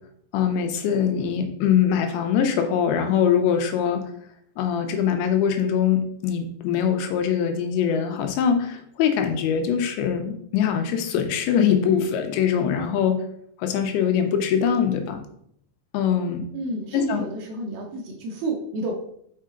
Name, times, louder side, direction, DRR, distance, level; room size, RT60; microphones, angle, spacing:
voice 1, 0.3-4.0 4.6-13.2 13.6-15.2 15.9-16.4 16.9-17.2, left 8 dB, 85° left, 6 dB, 3.0 m, -22 dB
voice 2, 16.5-19.0, right 2 dB, 75° right, 0 dB, 2.4 m, -30 dB
6.0 x 5.5 x 3.7 m, 0.69 s
omnidirectional pair, 5.1 m